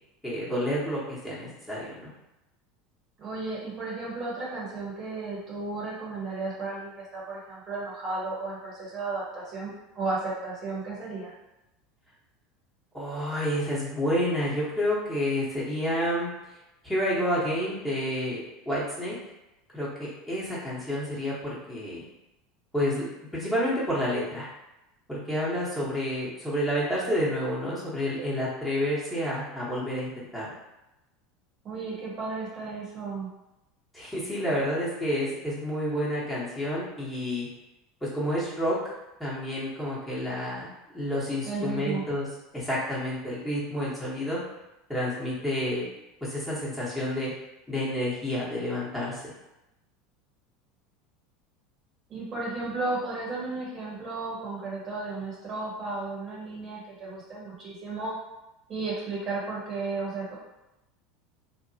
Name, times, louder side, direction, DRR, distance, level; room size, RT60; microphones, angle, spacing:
voice 1, 0.2-2.1 12.9-16.3 16.8-19.1 19.7-22.0 22.7-23.0 23.3-24.5 25.1-30.5 33.9-37.5 38.0-38.9 39.2-42.3 42.5-44.4 44.9-45.8 46.2-47.3 47.7-49.3, equal, 5° left, -8 dB, 1.1 m, -29 dB
voice 2, 3.2-11.3 31.6-33.3 41.4-42.0 52.1-58.1 58.7-60.4, right 3 dB, 40° right, -6 dB, 1.0 m, -34 dB
2.7 x 2.0 x 2.7 m, 0.94 s
hypercardioid pair, 75°, 0 cm